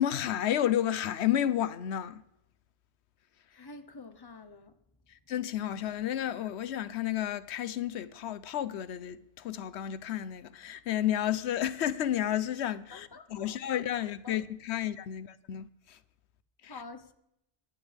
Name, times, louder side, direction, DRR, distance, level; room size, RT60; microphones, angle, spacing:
voice 1, 0.0-2.2 5.1-16.0 16.6-16.8, left 11 dB, 85° left, 0.9 m, -31 dB
voice 2, 3.5-4.8 12.9-14.4 16.7-17.1, left 3 dB, 25° left, 1.0 m, -49 dB
24.5 x 11.0 x 3.4 m
omnidirectional pair, 1.1 m